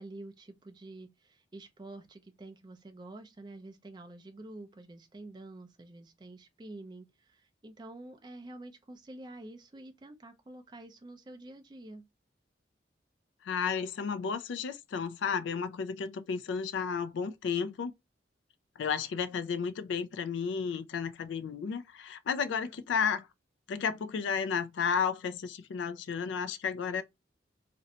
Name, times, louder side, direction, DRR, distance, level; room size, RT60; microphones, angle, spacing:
voice 1, 0.0-12.0, right 2 dB, 25° right, 0.4 m, -48 dB
voice 2, 13.4-17.9 18.8-23.3 23.7-27.0, left 6 dB, 85° left, 0.3 m, -32 dB
2.5 x 2.1 x 2.6 m
head